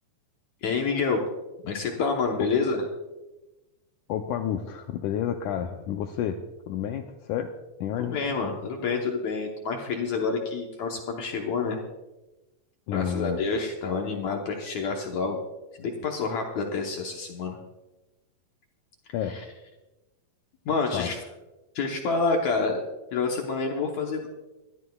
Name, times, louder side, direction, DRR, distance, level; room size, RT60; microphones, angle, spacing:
voice 1, 0.6-1.3 1.6-2.9 8.0-11.8 12.9-15.4 15.8-17.6 19.2-19.5 20.7-21.2 21.8-22.8 23.1-24.3, left 4 dB, 65° left, 1 dB, 1.9 m, -28 dB
voice 2, 4.1-6.4 6.7-7.5 7.8-8.1 12.9-13.4 19.1-19.4 20.9-21.1, left 9 dB, 90° left, 5 dB, 1.7 m, -30 dB
22.0 x 13.0 x 2.3 m, 1.1 s
omnidirectional pair, 4.3 m